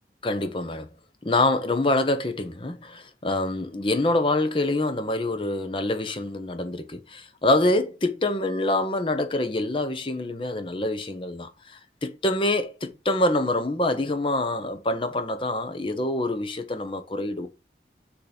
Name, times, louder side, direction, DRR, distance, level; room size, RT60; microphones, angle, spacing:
voice 1, 0.2-0.9 1.2-17.5, left 2 dB, 30° left, 0.7 m, -26 dB
6.5 x 2.8 x 5.0 m
head